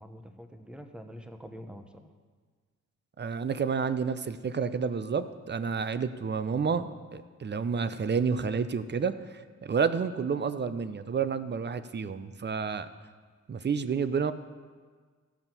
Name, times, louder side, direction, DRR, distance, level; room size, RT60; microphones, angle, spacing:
voice 1, 0.0-2.1, equal, 5° right, 7 dB, 1.1 m, -45 dB
voice 2, 3.2-12.9 13.5-14.3, right 6 dB, 35° right, 13 dB, 0.7 m, -30 dB
15.5 x 5.5 x 7.1 m, 1.5 s
cardioid pair, 70°, 31 cm